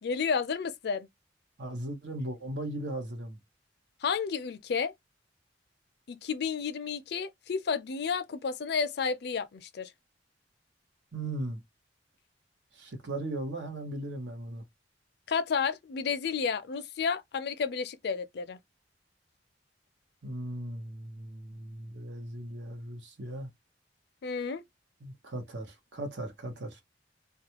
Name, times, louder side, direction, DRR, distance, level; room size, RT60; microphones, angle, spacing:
voice 1, 0.0-1.1 4.0-4.9 6.1-9.9 15.3-18.6 24.2-24.6, left 6 dB, 65° left, 0.4 m, -31 dB
voice 2, 1.6-3.4 11.1-11.6 12.7-14.6 20.2-23.5 25.0-26.8, right 1 dB, 75° right, 0.9 m, -37 dB
2.4 x 2.3 x 2.8 m
head